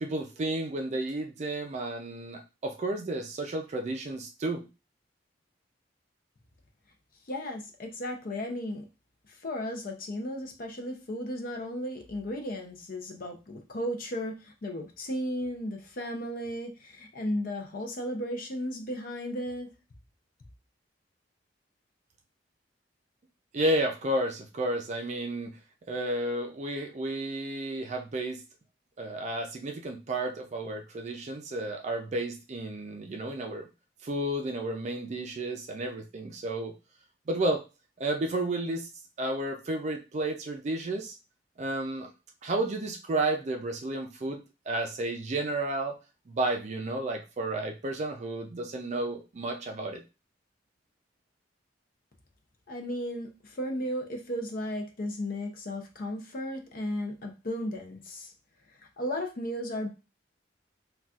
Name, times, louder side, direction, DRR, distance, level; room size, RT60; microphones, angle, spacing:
voice 1, 0.0-4.7 23.5-25.5 25.9-28.4 29.0-33.7 34.0-36.8 37.3-37.6 38.0-38.9 39.2-41.2 41.6-42.1 42.4-44.4 44.7-45.9 46.3-50.0, right 2 dB, 40° right, 4 dB, 0.4 m, -32 dB
voice 2, 7.3-8.9 9.4-19.7 52.7-58.3 59.0-59.9, equal, 50° left, 3 dB, 0.6 m, -35 dB
4.0 x 2.3 x 2.4 m, 0.29 s
head